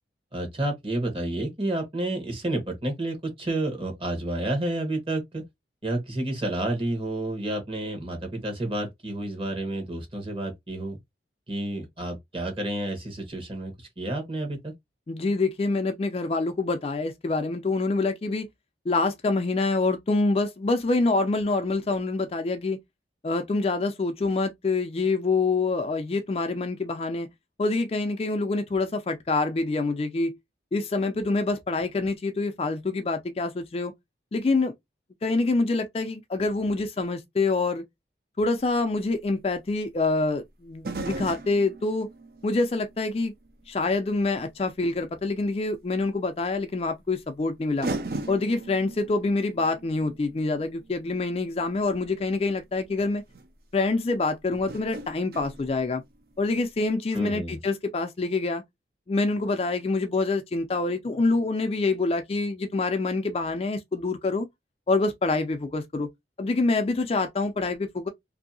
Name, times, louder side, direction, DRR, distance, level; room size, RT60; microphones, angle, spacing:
voice 1, 0.3-5.4 5.8-11.0 11.5-14.7 57.1-57.6, right 1 dB, 30° right, 1.0 m, -30 dB
voice 2, 15.1-18.5 18.9-22.8 23.2-27.3 27.6-30.4 30.7-33.9 34.3-34.7 35.2-37.8 38.4-42.1 42.4-43.3 43.7-47.9 48.3-53.2 53.7-56.0 56.4-58.6 59.1-64.5 64.9-66.1 66.4-68.1, left 3 dB, 35° left, 0.3 m, -26 dB
sound 1, 38.6-38.7 40.8-43.8 44.2-44.3 45.8-45.9 47.2-47.3 47.8-51.9 52.9-53.0 53.3-53.5 54.5-56.4 56.7-56.8, right 2 dB, 55° right, 0.5 m, -38 dB
2.7 x 2.6 x 2.6 m
head